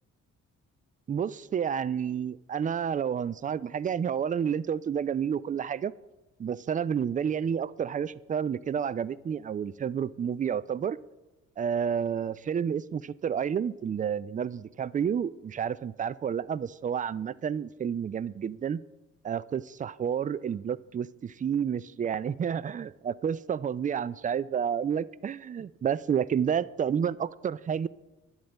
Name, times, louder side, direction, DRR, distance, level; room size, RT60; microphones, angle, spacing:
voice 1, 1.1-5.9 6.4-11.0 11.6-18.8 19.2-27.9, right 8 dB, 25° right, 19 dB, 0.3 m, -30 dB
10.5 x 8.7 x 3.9 m, 1.1 s
hypercardioid pair, 45°, 38 cm